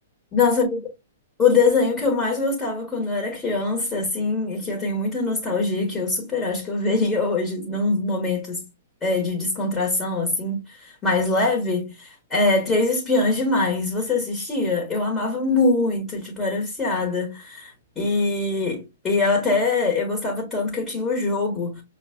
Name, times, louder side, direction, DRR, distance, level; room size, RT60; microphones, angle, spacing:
voice 1, 0.3-0.8 1.4-8.6 9.0-21.8, left 3 dB, 20° left, 1.2 m, -23 dB
5.8 x 2.3 x 2.5 m
figure-of-eight pair, 110°, 0 cm